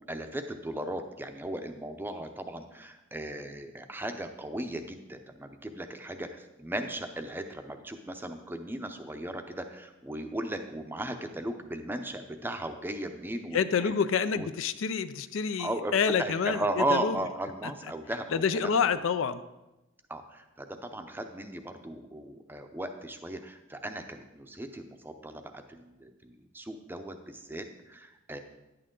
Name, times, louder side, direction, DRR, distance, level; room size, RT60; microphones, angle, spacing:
voice 1, 0.0-13.9 14.3-14.5 15.6-19.0 20.1-28.4, right 1 dB, 10° right, 6 dB, 0.6 m, -36 dB
voice 2, 13.5-17.2 18.3-19.4, left 6 dB, 70° left, 13 dB, 0.4 m, -28 dB
10.5 x 8.7 x 3.8 m, 1.0 s
head